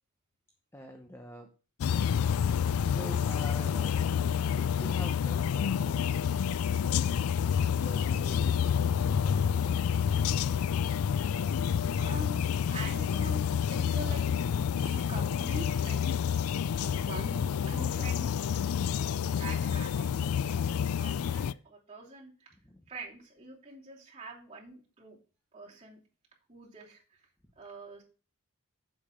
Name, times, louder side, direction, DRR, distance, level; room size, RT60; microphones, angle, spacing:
voice 1, 0.7-1.5 2.5-4.0 4.5-7.2 7.7-9.9 22.5-22.9, left 1 dB, 10° left, 4 dB, 0.8 m, -47 dB
sound 1, 1.8-21.5, left 7 dB, 70° left, 0.3 m, -29 dB
voice 2, 6.8-7.1 12.0-18.6 19.3-20.6 20.8-22.5 22.9-25.2 25.5-26.0 26.5-27.0 27.6-28.0, right 2 dB, 25° right, -5 dB, 2.9 m, -45 dB
7.3 x 6.9 x 5.1 m, 0.36 s
head